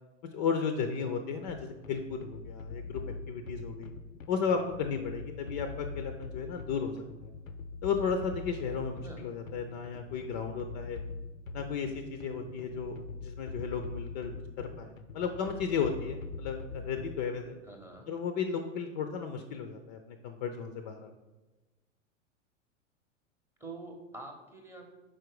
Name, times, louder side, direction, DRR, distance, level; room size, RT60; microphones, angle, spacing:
voice 1, 0.3-3.0 3.3-3.9 4.3-7.3 7.8-11.0 11.5-14.3 14.6-17.6 18.1-21.1, left 6 dB, 35° left, 6 dB, 0.4 m, -34 dB
sound 1, 1.5-17.4, left 4 dB, 85° left, 0.6 m, -43 dB
voice 2, 17.6-18.2 23.6-24.9, right 2 dB, 5° right, 1 dB, 0.7 m, -46 dB
5.0 x 4.4 x 4.7 m, 1.1 s
figure-of-eight pair, 100°, 39 cm